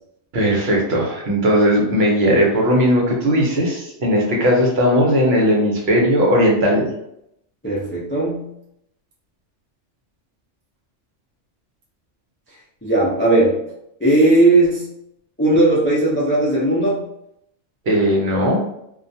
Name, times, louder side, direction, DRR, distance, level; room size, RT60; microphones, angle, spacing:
voice 1, 0.3-6.9 17.9-18.6, equal, 60° right, -2 dB, 0.9 m, -17 dB
voice 2, 7.6-8.5 12.8-13.6 14.0-14.8 15.4-17.0, right 2 dB, 20° left, -7 dB, 0.3 m, -17 dB
2.4 x 2.2 x 2.6 m, 0.78 s
omnidirectional pair, 1.3 m